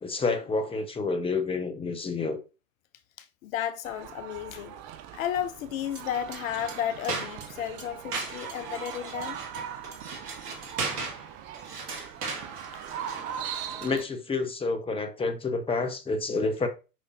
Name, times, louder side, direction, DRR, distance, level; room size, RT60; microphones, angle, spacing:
voice 1, 0.0-2.4 13.8-16.7, left 3 dB, 10° left, 1.0 m, -29 dB
voice 2, 3.2-4.7 5.1-9.4 12.7-12.8, left 10 dB, 55° left, 0.6 m, -33 dB
sound 1, 3.8-14.0, right 9 dB, 40° right, 0.9 m, -40 dB
sound 2, 5.9-14.0, right 4 dB, 70° right, 2.0 m, -38 dB
7.5 x 5.5 x 2.7 m
figure-of-eight pair, 90°, 48 cm